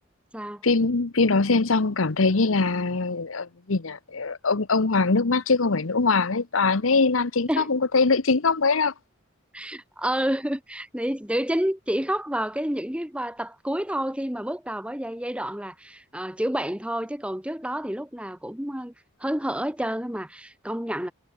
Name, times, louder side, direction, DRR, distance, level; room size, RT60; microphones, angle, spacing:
voice 1, 0.6-8.9, left 4 dB, 85° left, 1.1 m, -22 dB
voice 2, 9.5-18.9 19.2-21.1, right 1 dB, 5° right, 1.6 m, -29 dB
head